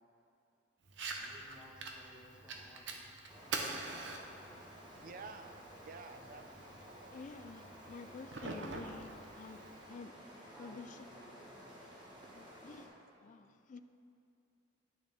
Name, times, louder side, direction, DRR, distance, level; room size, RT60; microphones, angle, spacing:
Fire, 0.9-9.9, right 3 dB, 70° right, 0.8 m, -46 dB
voice 1, 1.2-3.1 3.4-4.1 6.1-6.5 10.3-11.8, equal, 5° right, -5 dB, 1.2 m, -59 dB
sound 1, 3.3-12.9, equal, 25° right, 1.4 m, -54 dB
voice 2, 5.0-5.6 5.8-6.5 6.9-7.2 8.4-8.8 13.2-13.6, right 4 dB, 45° right, 8 dB, 0.4 m, -51 dB
voice 3, 7.1-11.1 12.3-12.9 13.2-13.8, left 4 dB, 40° left, 10 dB, 0.3 m, -50 dB
10.5 x 6.4 x 3.5 m, 2.6 s
head